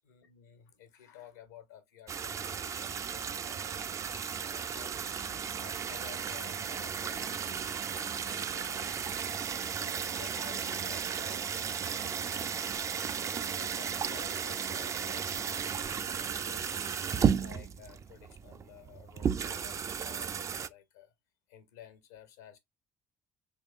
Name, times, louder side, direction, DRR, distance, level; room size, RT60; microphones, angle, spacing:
voice 1, 0.0-5.0 5.5-9.0 9.7-11.5 11.8-12.4 13.4-21.1 21.5-22.6, left 9 dB, 85° left, 0.7 m, -53 dB
sound 1, 2.1-20.7, right 7 dB, 40° right, 0.3 m, -34 dB
3.5 x 2.9 x 2.5 m
hypercardioid pair, 55°, 8 cm